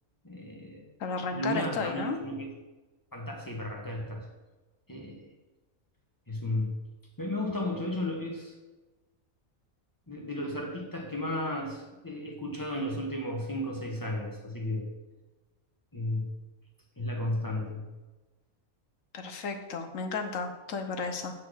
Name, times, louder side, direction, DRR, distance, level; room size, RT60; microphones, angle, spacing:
voice 1, 0.2-0.8 1.3-2.5 3.1-4.2 4.9-5.3 6.3-6.8 7.2-8.5 10.1-14.9 15.9-16.3 17.0-17.9, left 1 dB, 15° left, 0 dB, 1.3 m, -34 dB
voice 2, 1.0-2.2 19.1-21.3, left 4 dB, 65° left, 6 dB, 1.2 m, -33 dB
8.4 x 4.5 x 6.3 m, 1.2 s
omnidirectional pair, 1.5 m